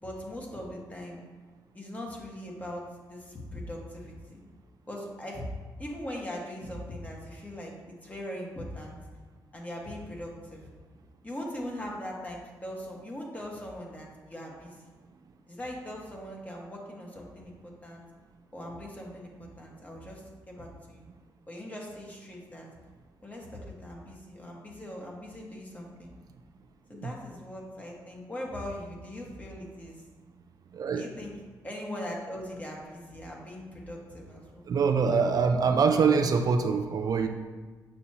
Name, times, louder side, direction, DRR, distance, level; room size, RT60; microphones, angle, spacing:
voice 1, 0.0-1.2 1.7-2.8 3.1-4.4 4.9-5.4 5.8-9.0 9.5-10.7 11.2-14.9 15.5-18.0 18.5-21.1 21.5-22.7 23.2-26.1 26.9-30.0 30.9-31.3 31.6-34.6, left 1 dB, 20° left, -2 dB, 1.5 m, -40 dB
voice 2, 30.7-31.1 34.6-37.3, right 5 dB, 55° right, 5 dB, 0.5 m, -24 dB
6.8 x 6.2 x 2.9 m, 1.4 s
cardioid pair, 75°, 8 cm